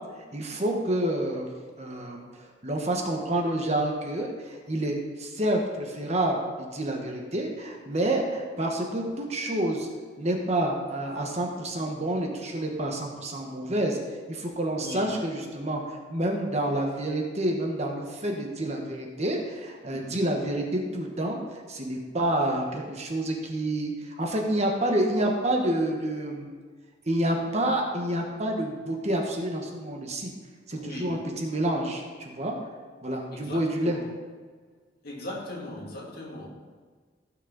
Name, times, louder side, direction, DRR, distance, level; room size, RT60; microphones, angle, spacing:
voice 1, 0.3-1.5 1.8-9.9 10.2-14.0 14.3-26.5 27.1-30.3 30.7-32.6 33.0-34.0, right 1 dB, 35° right, 1 dB, 1.3 m, -28 dB
voice 2, 14.7-15.1 19.9-20.2 30.7-31.2 33.3-34.0 35.0-36.5, left 1 dB, 55° left, -4 dB, 2.5 m, -39 dB
16.0 x 6.4 x 4.1 m, 1.5 s
head